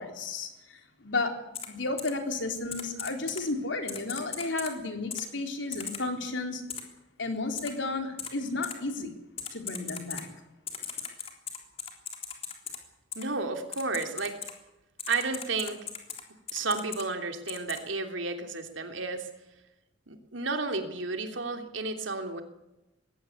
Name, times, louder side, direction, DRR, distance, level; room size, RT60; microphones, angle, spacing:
voice 1, 0.0-1.3 1.7-6.6 7.2-9.1 9.5-10.3, left 3 dB, 75° left, 5 dB, 4.0 m, -33 dB
Typing, 1.5-1.7 2.0-2.1 2.7-3.4 3.9-4.7 5.1-5.2 5.7-6.0 6.7-6.8 7.6-7.7 8.2-8.3 8.6-8.7 9.4-10.2 10.7-12.8 13.1-13.2 13.7-14.5 15.0-16.2 16.5-17.0 17.5-17.8, left 7 dB, 35° left, 3.6 m, -37 dB
voice 2, 13.1-14.4 15.1-15.8 16.5-19.3 20.1-22.4, right 3 dB, 90° right, 6 dB, 3.1 m, -32 dB
21.0 x 17.0 x 8.5 m, 0.95 s
head